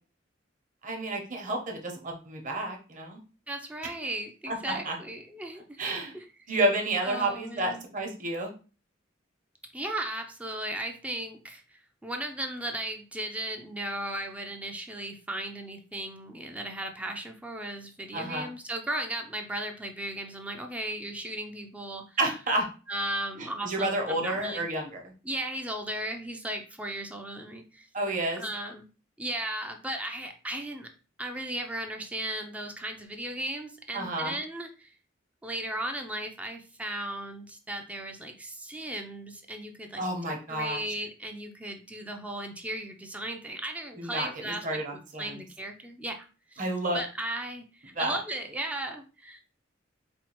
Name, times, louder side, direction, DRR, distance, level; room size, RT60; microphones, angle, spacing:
voice 1, 0.8-3.2 4.5-5.0 5.8-6.2 6.5-8.5 18.1-18.5 22.2-22.7 23.4-25.0 27.9-28.4 33.9-34.4 40.0-40.8 44.0-45.4 46.6-47.0 47.9-48.2, right 1 dB, 40° right, 2 dB, 0.9 m, -30 dB
voice 2, 3.5-5.8 6.1-6.3 7.0-7.8 9.7-22.2 22.9-24.7 25.2-27.9 28.4-28.9 29.2-30.9 31.2-34.9 35.4-46.6 46.9-49.4, right 1 dB, 5° right, 3 dB, 0.4 m, -36 dB
4.3 x 2.3 x 2.9 m, 0.35 s
head